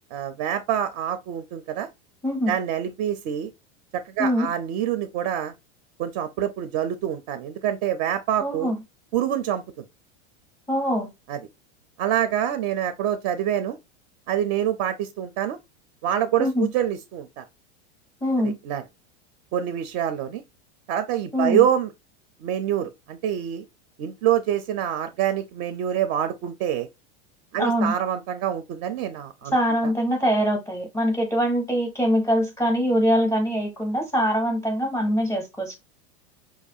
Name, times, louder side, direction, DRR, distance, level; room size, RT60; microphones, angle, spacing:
voice 1, 0.1-1.9 2.5-3.5 3.9-5.5 6.0-8.7 9.1-9.6 11.3-11.4 12.0-13.8 14.3-15.6 16.0-17.4 18.4-18.8 19.5-20.4 20.9-21.9 22.4-23.6 24.0-26.9 27.5-29.6 29.8-29.9, right 10 dB, 40° right, 0.4 m, -26 dB
voice 2, 2.2-2.5 4.2-4.5 8.4-8.8 10.7-11.1 16.4-16.7 18.2-18.5 21.3-21.6 27.6-27.9 29.5-35.8, equal, 5° left, 0.6 m, -23 dB
4.8 x 2.4 x 2.6 m
supercardioid pair, 145°, 35 cm